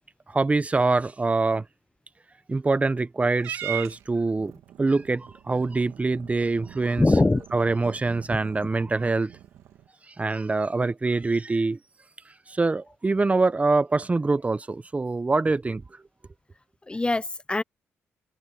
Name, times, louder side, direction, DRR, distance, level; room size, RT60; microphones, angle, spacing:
voice 1, 0.3-1.6 2.5-4.5 4.8-7.1 7.5-9.3 10.2-11.8 12.5-15.8, right 3 dB, 25° right, 1.0 m, -24 dB
Purr / Meow, 3.4-9.9, right 12 dB, 85° right, 2.6 m, -41 dB
voice 2, 7.0-7.5 16.9-17.6, left 2 dB, 20° left, 0.9 m, -22 dB
cardioid pair, 65°, 5 cm